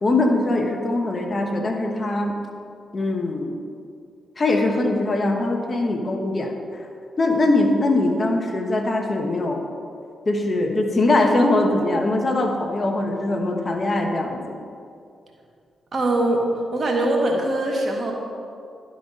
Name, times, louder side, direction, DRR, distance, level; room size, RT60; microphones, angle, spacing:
voice 1, 0.0-2.4 2.9-3.6 4.4-6.9 7.2-9.6 10.3-14.4, left 2 dB, 45° left, 3 dB, 1.1 m, -22 dB
voice 2, 15.9-16.5 16.7-18.1, right 1 dB, 50° right, 0 dB, 1.6 m, -22 dB
11.0 x 4.1 x 5.2 m, 2.4 s
supercardioid pair, 45°, 0 cm